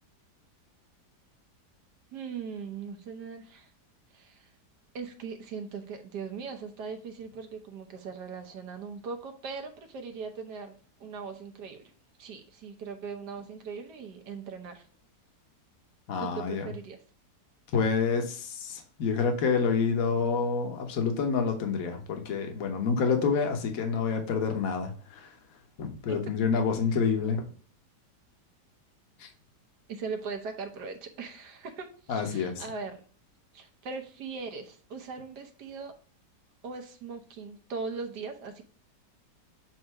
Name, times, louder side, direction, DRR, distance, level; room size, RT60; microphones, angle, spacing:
voice 1, 2.1-3.7 4.1-4.5 4.9-10.7 11.0-11.9 12.2-14.9 16.2-17.0 26.1-26.2 29.9-33.0 33.5-35.9 36.6-38.6, right 5 dB, 75° right, 5 dB, 1.5 m, -39 dB
voice 2, 16.1-16.7 17.7-25.3 25.8-27.4 29.2-29.3 32.1-32.6, left 5 dB, 60° left, 4 dB, 1.4 m, -28 dB
7.6 x 2.6 x 4.6 m, 0.42 s
omnidirectional pair, 1.8 m